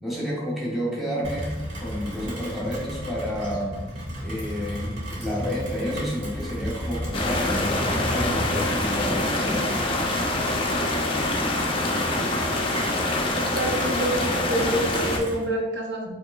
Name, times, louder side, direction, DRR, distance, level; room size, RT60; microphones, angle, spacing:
voice 1, 0.0-9.8, equal, ahead, -6 dB, 0.9 m, -30 dB
Rain, 1.2-15.4, equal, 85° right, 1.4 m, -34 dB
sound 1, 7.1-15.2, left 2 dB, 25° left, 0.4 m, -25 dB
voice 2, 13.5-16.1, right 1 dB, 60° right, 0 dB, 0.5 m, -27 dB
5.0 x 3.0 x 2.3 m, 1.1 s
head